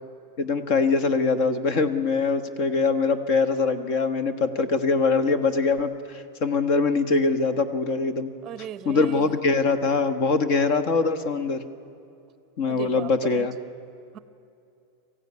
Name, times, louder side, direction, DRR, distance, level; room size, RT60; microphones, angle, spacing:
voice 1, 0.4-8.3 8.8-11.6 12.6-13.5, left 4 dB, 45° left, 11 dB, 1.3 m, -23 dB
voice 2, 8.4-9.3 12.7-13.5 14.1-14.2, right 10 dB, 25° right, 15 dB, 0.7 m, -37 dB
23.5 x 15.5 x 9.6 m, 2.6 s
supercardioid pair, 165°, 0 cm